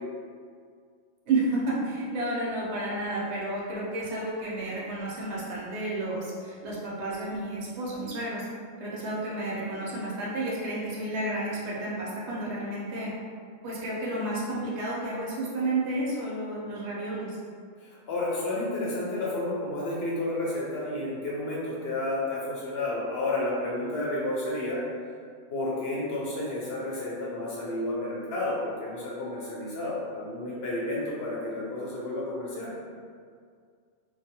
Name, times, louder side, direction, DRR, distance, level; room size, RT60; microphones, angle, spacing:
voice 1, 1.3-8.5 8.8-13.1 13.6-17.4, right 2 dB, 70° right, -6 dB, 0.9 m, -31 dB
voice 2, 17.8-24.8 25.5-32.7, left 2 dB, 65° left, -5 dB, 0.7 m, -31 dB
2.5 x 2.2 x 2.7 m, 2.1 s
omnidirectional pair, 1.3 m